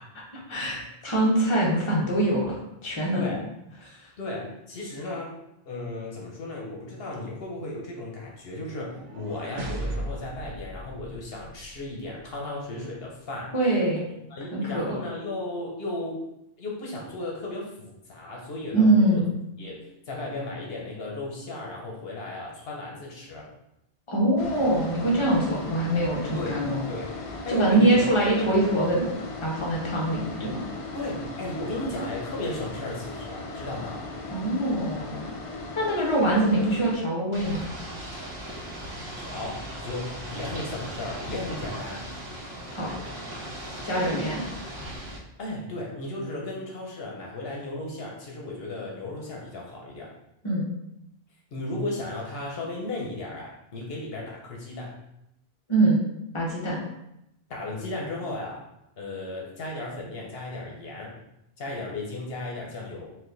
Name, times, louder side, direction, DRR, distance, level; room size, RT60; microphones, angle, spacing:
voice 1, 0.5-3.3 13.5-14.1 14.5-15.0 18.7-19.3 24.1-26.8 27.5-29.1 29.4-30.6 34.3-35.2 35.8-37.6 42.7-42.9 43.8-44.4 50.4-50.7 55.7-56.0 56.3-56.8, right 1 dB, 30° left, -4 dB, 0.9 m, -23 dB
voice 2, 3.1-3.4 4.2-5.4 5.7-13.5 14.3-16.2 16.6-19.2 19.6-23.5 26.3-26.6 26.9-27.1 27.4-28.1 30.9-34.1 39.2-42.1 43.9-44.3 45.4-50.1 51.5-54.9 57.5-58.6 59.0-61.1 61.6-63.1, left 2 dB, 70° left, -2 dB, 1.0 m, -35 dB
sound 1, 8.7-11.9, right 1 dB, 65° right, 0.8 m, -36 dB
sound 2, 24.4-37.0, left 2 dB, 50° left, 0.4 m, -38 dB
Ocean / Boat Water vehicle, 37.3-45.2, right 1 dB, 85° right, 1.1 m, -38 dB
4.3 x 2.3 x 3.8 m, 0.82 s
omnidirectional pair, 1.0 m